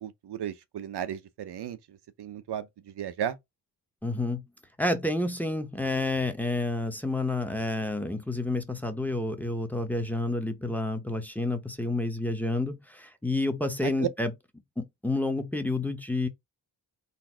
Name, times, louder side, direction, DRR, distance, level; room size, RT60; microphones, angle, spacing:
voice 1, 0.0-1.8 2.2-2.7 3.0-3.4 13.8-14.1, right 10 dB, 70° right, 0.6 m, -34 dB
voice 2, 4.0-4.4 4.8-14.3 14.8-16.3, left 2 dB, 5° left, 0.8 m, -29 dB
4.2 x 2.6 x 4.3 m
wide cardioid pair, 125°, 41 cm